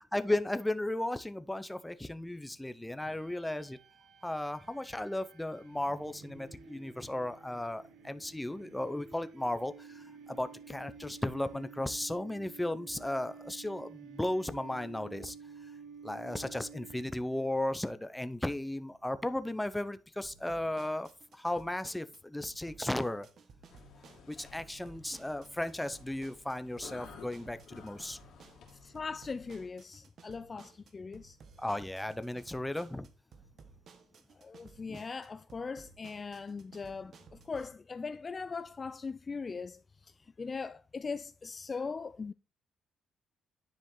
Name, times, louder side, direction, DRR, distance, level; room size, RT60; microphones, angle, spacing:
voice 1, 0.1-3.8 4.2-15.3 16.0-23.3 24.3-28.2 31.6-33.1 34.9-35.0, left 1 dB, 10° left, 0.8 m, -35 dB
sound 1, 3.1-17.5, right 5 dB, 85° right, 1.4 m, -52 dB
sound 2, 20.2-37.7, right 5 dB, 60° right, 1.5 m, -57 dB
sound 3, 23.7-29.7, left 5 dB, 75° left, 2.6 m, -54 dB
voice 2, 28.8-31.4 34.4-40.1 40.4-42.3, left 4 dB, 35° left, 0.4 m, -40 dB
10.0 x 5.1 x 3.9 m
cardioid pair, 90°, 0 cm